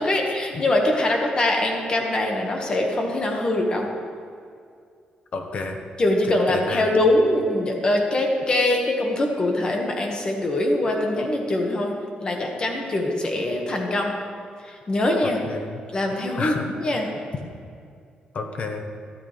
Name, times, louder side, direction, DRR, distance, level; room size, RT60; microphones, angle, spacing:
voice 1, 0.0-3.9 6.0-11.9 12.2-14.1 14.6-15.4 15.9-17.1, left 1 dB, 30° left, 1 dB, 1.7 m, -23 dB
voice 2, 5.3-5.8 6.5-6.8 15.2-15.7 16.4-16.6 18.3-18.8, left 4 dB, 45° left, 4 dB, 1.2 m, -30 dB
13.5 x 12.5 x 3.4 m, 2.3 s
cardioid pair, 140°, 3 cm